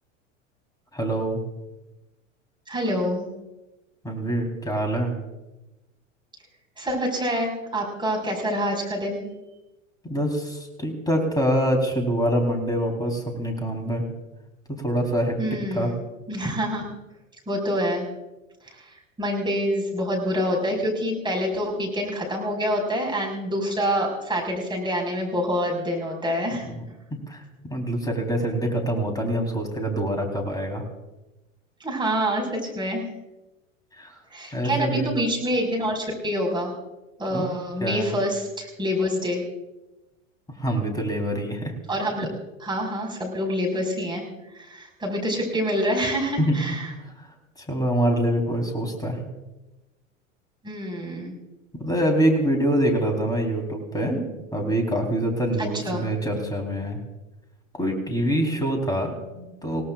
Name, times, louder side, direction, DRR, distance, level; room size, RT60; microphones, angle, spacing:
voice 1, 0.9-1.4 4.0-5.1 10.0-14.1 14.8-15.4 15.7-15.9 26.6-26.8 27.3-30.8 34.0-34.2 34.5-35.1 37.3-37.5 37.8-38.1 40.6-41.7 46.4-46.8 47.6-49.3 51.8-57.0 57.8-59.8, right 1 dB, 10° left, 3 dB, 4.1 m, -25 dB
voice 2, 2.7-3.3 6.8-9.3 15.4-15.9 16.3-16.9 17.5-18.1 19.2-26.7 31.8-33.1 34.3-36.7 37.2-39.4 41.9-42.3 42.6-44.2 44.6-46.9 50.6-51.3 55.7-56.0, equal, 10° right, -1 dB, 5.6 m, -26 dB
29.0 x 17.5 x 2.6 m, 1.0 s
hypercardioid pair, 90°, 39 cm